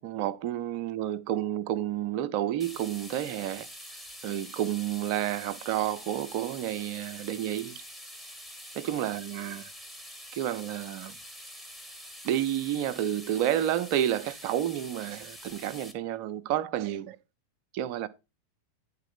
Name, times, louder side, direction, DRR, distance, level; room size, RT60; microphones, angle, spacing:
voice 1, 0.0-3.7 4.2-7.8 8.8-9.6 10.3-11.1 12.2-17.2 17.7-18.1, right 11 dB, 45° right, 0.7 m, -30 dB
sound 1, 2.6-15.9, equal, ahead, 1.2 m, -46 dB
9.7 x 4.0 x 5.5 m
figure-of-eight pair, 90°, 0 cm